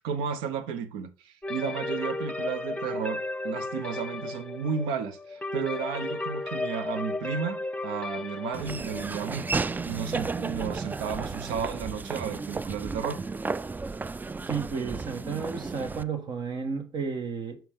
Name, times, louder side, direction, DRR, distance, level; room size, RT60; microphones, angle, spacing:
voice 1, 0.0-9.5 9.9-13.2, right 7 dB, 80° right, 0.7 m, -33 dB
sound 1, 1.4-11.1, left 2 dB, 15° left, 0.7 m, -35 dB
Laughter / Walk footsteps, 8.5-16.0, right 4 dB, 20° right, 0.3 m, -33 dB
voice 2, 14.5-17.6, right 6 dB, 60° right, 1.2 m, -32 dB
7.0 x 4.6 x 3.6 m
hypercardioid pair, 50°, 8 cm